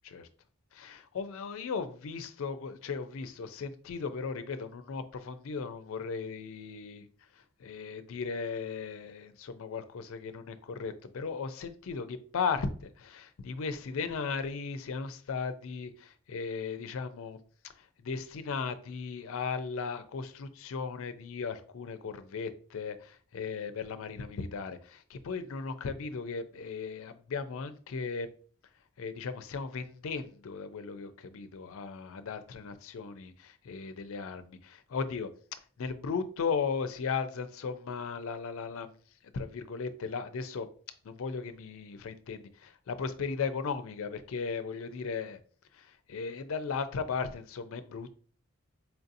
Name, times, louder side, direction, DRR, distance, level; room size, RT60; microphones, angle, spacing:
voice 1, 0.7-7.1 7.4-17.4 17.6-28.3 29.0-35.3 35.8-38.9 39.3-40.7 41.0-45.4 45.7-48.1, left 5 dB, 65° left, 11 dB, 0.4 m, -36 dB
4.4 x 2.7 x 2.5 m, 0.42 s
head